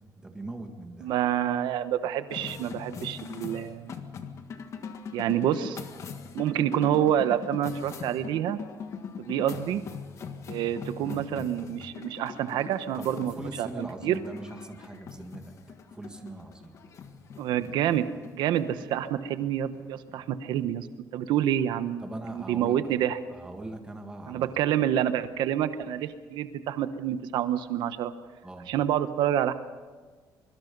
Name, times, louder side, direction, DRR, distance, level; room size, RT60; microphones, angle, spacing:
voice 1, 0.2-1.1 11.0-11.2 13.0-15.5 15.9-16.8 22.0-22.8 23.1-24.6 28.4-28.7, right 2 dB, 10° right, 4 dB, 1.9 m, -40 dB
voice 2, 1.0-3.9 5.1-5.8 6.3-8.6 9.2-9.8 10.5-14.2 17.4-18.1 18.3-20.9 21.1-22.0 22.3-23.2 24.3-28.1 28.7-29.5, right 11 dB, 80° right, 11 dB, 1.1 m, -27 dB
sound 1, 2.3-20.9, left 6 dB, 40° left, 1.6 m, -42 dB
24.5 x 23.5 x 5.4 m, 1.4 s
cardioid pair, 165°, 8 cm